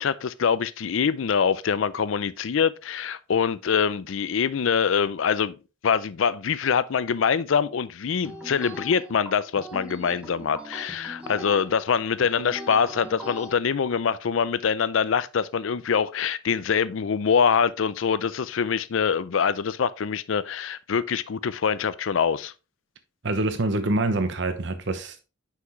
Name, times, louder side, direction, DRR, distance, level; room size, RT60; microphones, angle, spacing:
voice 1, 0.0-5.6 5.8-22.5, left 6 dB, 80° left, 0.5 m, -24 dB
sound 1, 8.2-13.5, equal, 5° right, 1.4 m, -40 dB
voice 2, 23.2-25.2, right 2 dB, 65° right, 0.9 m, -25 dB
6.0 x 5.8 x 3.0 m
head